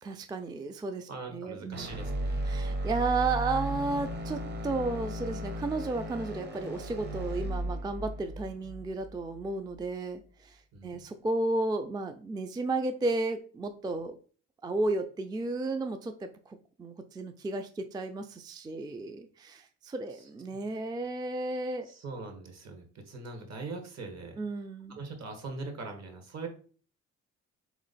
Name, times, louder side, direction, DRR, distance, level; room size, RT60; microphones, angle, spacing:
voice 1, 0.0-1.9 2.4-14.2 14.6-21.9 24.4-25.0, right 2 dB, 15° right, 7 dB, 0.3 m, -33 dB
voice 2, 1.1-2.4 10.7-11.0 20.1-20.2 21.8-24.4 24.9-26.5, right 3 dB, 60° right, 4 dB, 1.4 m, -41 dB
sound 1, 1.7-9.9, right 1 dB, 35° right, 0.9 m, -36 dB
3.7 x 3.0 x 4.0 m, 0.42 s
cardioid pair, 90°, 30 cm